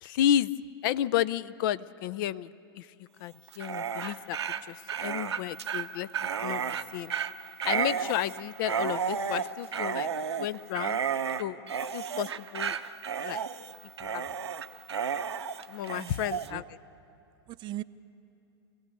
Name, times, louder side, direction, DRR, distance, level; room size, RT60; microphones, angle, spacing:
voice 1, 0.0-0.5 0.8-2.5 2.8-4.4 4.7-6.1 6.4-6.6 6.9-7.1 7.6-10.1 10.4-11.0 11.4-11.6 11.9-12.8 13.2-13.4 14.0-14.2 15.7-16.6, left 11 dB, 55° left, 18 dB, 0.5 m, -31 dB
Dog, 3.5-16.5, right 7 dB, 85° right, 0.8 m, -32 dB
voice 2, 15.8-16.6 17.5-17.8, right 15 dB, 35° right, 14 dB, 0.6 m, -40 dB
25.5 x 17.0 x 8.4 m, 2.6 s
hypercardioid pair, 100°, 14 cm